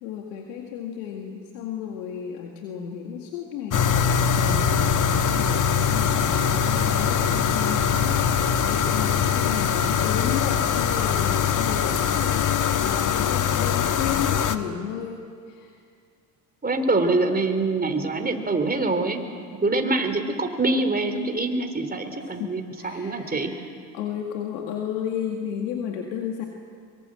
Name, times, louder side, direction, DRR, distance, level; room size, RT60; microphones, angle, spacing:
voice 1, 0.0-15.7 22.1-23.6 23.9-26.5, left 8 dB, 80° left, 2 dB, 2.1 m, -33 dB
sound 1, 3.7-14.6, left 7 dB, 40° left, 1.4 m, -22 dB
voice 2, 16.6-19.2 19.6-23.5, right 2 dB, 20° right, 6 dB, 3.5 m, -24 dB
23.5 x 23.5 x 7.7 m, 2.2 s
hypercardioid pair, 70°, 49 cm